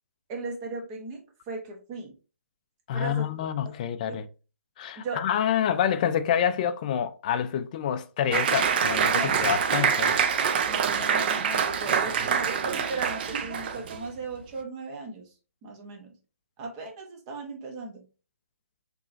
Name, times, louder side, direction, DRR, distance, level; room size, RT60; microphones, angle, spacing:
voice 1, 0.3-2.1 2.9-3.3 4.1-4.2 5.0-5.2 9.1-9.3 10.7-15.3 15.6-16.1 16.6-18.0, right 3 dB, 25° right, 0.8 m, -37 dB
voice 2, 2.9-4.3 4.8-10.2, left 9 dB, 30° left, 0.3 m, -27 dB
Applause, 8.3-14.0, right 7 dB, 40° right, 0.4 m, -25 dB
3.8 x 3.0 x 2.5 m
hypercardioid pair, 150°, 8 cm